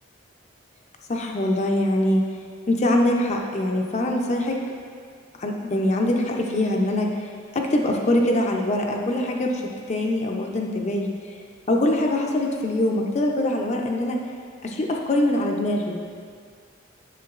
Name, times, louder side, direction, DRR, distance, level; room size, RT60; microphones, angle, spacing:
voice 1, 1.1-2.2 2.7-4.6 5.4-7.1 7.5-9.6 9.9-11.4 11.7-14.2 14.6-16.0, left 1 dB, 35° left, 1 dB, 0.5 m, -23 dB
7.6 x 6.6 x 2.4 m, 2.1 s
head